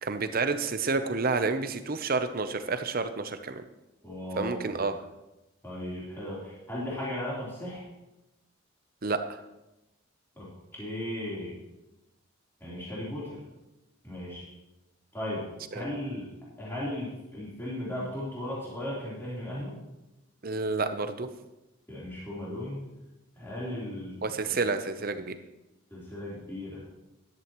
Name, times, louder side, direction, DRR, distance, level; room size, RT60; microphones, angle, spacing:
voice 1, 0.0-3.6 4.4-4.9 9.0-9.4 15.7-15.9 20.4-21.3 24.2-25.3, right 4 dB, 45° right, 9 dB, 0.7 m, -29 dB
voice 2, 4.0-4.8 5.6-7.8 10.4-10.5 10.8-11.5 12.6-13.4 14.0-14.5 15.1-15.5 15.7-16.3 16.6-19.8 21.9-22.9 23.4-24.3 25.9-26.8, left 1 dB, 10° left, -8 dB, 3.7 m, -36 dB
14.0 x 11.5 x 3.1 m, 0.97 s
head